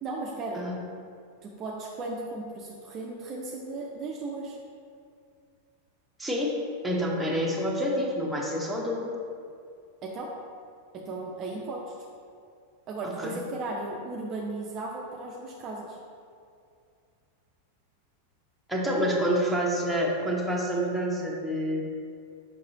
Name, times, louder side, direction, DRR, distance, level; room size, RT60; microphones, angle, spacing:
voice 1, 0.0-0.6 1.4-4.6 10.0-10.3 10.9-12.0 12.9-16.0, right 2 dB, 30° right, -1 dB, 0.6 m, -36 dB
voice 2, 6.2-6.6 6.8-9.1 13.0-13.4 18.7-21.8, equal, ahead, -3 dB, 1.0 m, -28 dB
6.5 x 5.3 x 2.8 m, 2.3 s
figure-of-eight pair, 90°, 0 cm